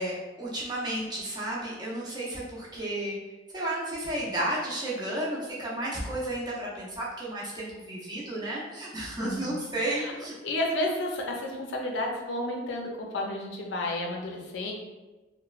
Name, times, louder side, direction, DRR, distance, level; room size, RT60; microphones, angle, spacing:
voice 1, 0.0-3.2 3.5-10.3, right 1 dB, 20° right, -6 dB, 0.6 m, -32 dB
voice 2, 9.2-9.6 9.9-10.1 10.4-14.7, left 1 dB, 65° left, 0 dB, 0.4 m, -31 dB
2.9 x 2.1 x 2.3 m, 1.1 s
head